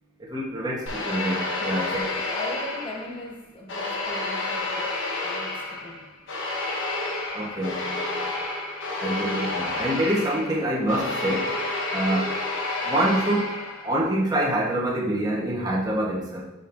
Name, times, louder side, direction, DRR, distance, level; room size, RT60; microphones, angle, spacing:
voice 1, 0.2-2.1 7.3-8.3 9.0-11.6 11.9-12.4 12.8-16.5, right 1 dB, 20° right, -4 dB, 1.1 m, -26 dB
sound 1, 0.9-3.3 3.7-14.0, left 2 dB, 60° left, 1.2 m, -30 dB
voice 2, 1.6-4.9 5.2-6.1, left 1 dB, 25° left, 0 dB, 1.1 m, -39 dB
7.5 x 5.2 x 2.6 m, 1.0 s
head